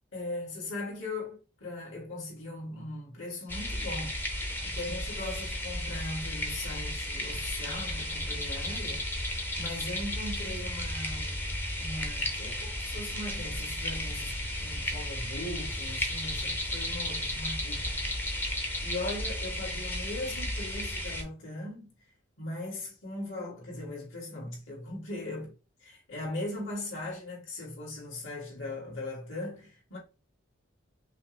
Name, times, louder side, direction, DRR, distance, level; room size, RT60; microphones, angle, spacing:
voice 1, 0.1-11.5 11.8-17.9 18.8-21.9 22.4-25.5 25.8-30.0, left 2 dB, 70° left, 2.4 m, -39 dB
sound 1, 3.5-21.2, left 1 dB, 10° left, 0.6 m, -34 dB
5.6 x 2.1 x 3.1 m
head